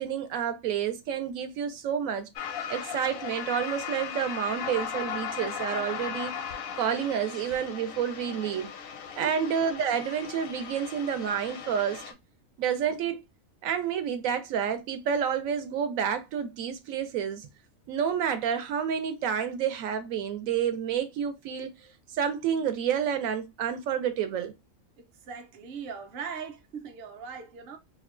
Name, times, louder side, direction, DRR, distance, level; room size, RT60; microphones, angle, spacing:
voice 1, 0.0-2.3 2.7-6.3 6.8-8.7 9.2-12.0 12.6-13.2 13.6-17.5 17.9-21.7 22.1-24.5, right 8 dB, 75° right, 1.0 m, -29 dB
sound 1, 2.4-12.1, left 7 dB, 65° left, 0.6 m, -37 dB
voice 2, 25.0-27.8, right 6 dB, 55° right, 0.7 m, -40 dB
4.1 x 2.2 x 2.4 m
omnidirectional pair, 1.4 m